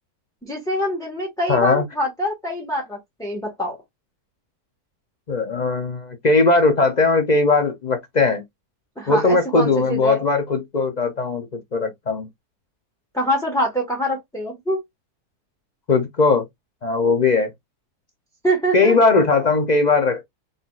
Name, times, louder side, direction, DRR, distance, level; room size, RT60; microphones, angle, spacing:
voice 1, 0.4-3.8 9.0-10.2 13.1-14.8 18.4-18.9, equal, ahead, 1.3 m, -24 dB
voice 2, 1.5-1.8 5.3-8.4 9.1-12.3 15.9-16.4 16.8-17.5 18.7-20.2, left 3 dB, 50° left, 0.5 m, -19 dB
4.0 x 3.7 x 2.4 m
omnidirectional pair, 1.6 m